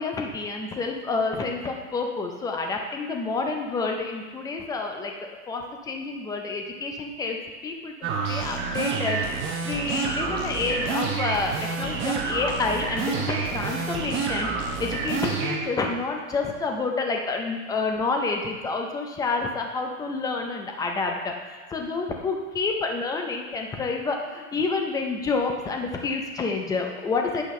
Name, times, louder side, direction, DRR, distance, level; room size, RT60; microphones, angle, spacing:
voice 1, 0.0-7.4 7.6-21.3 21.7-27.4, left 4 dB, 10° left, 2 dB, 0.4 m, -29 dB
sound 1, 8.0-15.6, right 5 dB, 25° right, 1.1 m, -28 dB
9.6 x 5.6 x 3.1 m, 1.4 s
hypercardioid pair, 115°, 44 cm